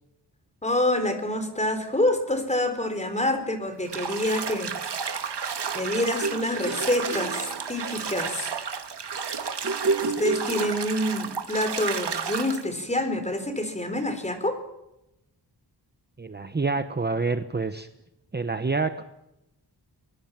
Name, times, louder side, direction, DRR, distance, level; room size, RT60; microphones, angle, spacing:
voice 1, 0.6-5.0 5.7-8.5 10.0-14.6, left 1 dB, 15° left, 8 dB, 4.1 m, -27 dB
Bathtub (filling or washing), 3.9-12.6, right 6 dB, 70° right, 2.0 m, -32 dB
sound 1, 6.2-8.1 9.6-11.2, right 3 dB, 40° right, 1.4 m, -30 dB
voice 2, 16.2-17.9 18.3-19.0, right 4 dB, 25° right, 9 dB, 1.0 m, -27 dB
24.0 x 21.0 x 7.5 m, 0.87 s
wide cardioid pair, 130°, 42 cm